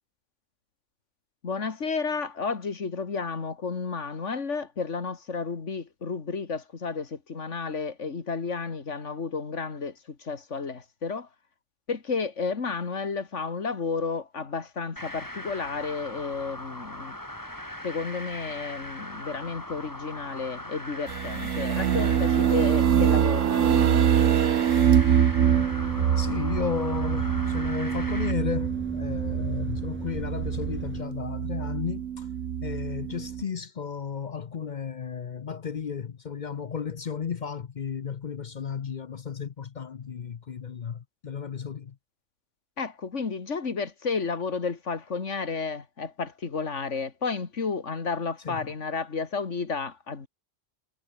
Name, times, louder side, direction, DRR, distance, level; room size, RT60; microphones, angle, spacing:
voice 1, 1.4-11.3 11.9-17.2 17.8-24.1 42.8-50.3, left 5 dB, 70° left, 2.4 m, -32 dB
sound 1, 15.0-28.3, left 1 dB, 15° left, 3.5 m, -40 dB
sound 2, 21.1-33.4, right 9 dB, 85° right, 1.3 m, -24 dB
Truck, 24.9-31.0, right 1 dB, 10° right, 2.5 m, -38 dB
voice 2, 26.2-32.3 32.6-42.0 48.4-48.6, left 7 dB, 45° left, 0.7 m, -34 dB
omnidirectional pair, 1.3 m